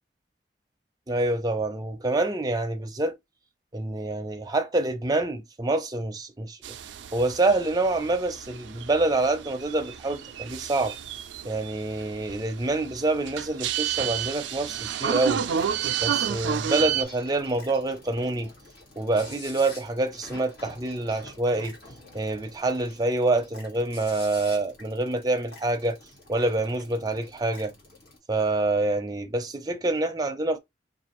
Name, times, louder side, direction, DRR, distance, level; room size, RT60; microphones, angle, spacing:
voice 1, 1.1-3.2 3.7-6.6 7.1-10.9 11.4-15.4 16.0-18.5 19.0-21.8 22.1-26.0 26.3-27.7 28.3-30.6, right 2 dB, 20° right, 0.6 m, -26 dB
sound 1, 6.6-17.0, right 9 dB, 85° right, 0.4 m, -31 dB
sound 2, 15.3-28.2, left 2 dB, 60° left, 2.0 m, -47 dB
4.9 x 2.4 x 3.0 m
head